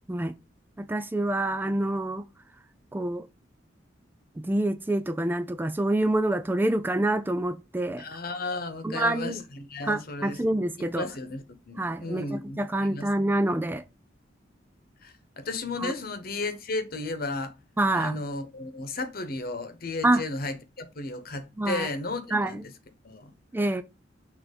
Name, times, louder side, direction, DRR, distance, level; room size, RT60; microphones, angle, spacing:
voice 1, 0.8-2.2 2.9-3.3 4.4-8.0 8.8-9.3 9.8-11.0 11.8-13.8 15.8-15.9 17.8-18.2 20.0-20.2 21.6-21.9 22.3-22.6 23.5-23.8, right 1 dB, 10° right, 0.3 m, -26 dB
voice 2, 8.0-10.4 10.8-13.1 15.0-17.5 17.9-22.7 23.0-23.3, left 3 dB, 55° left, 1.1 m, -34 dB
6.6 x 2.9 x 5.2 m
head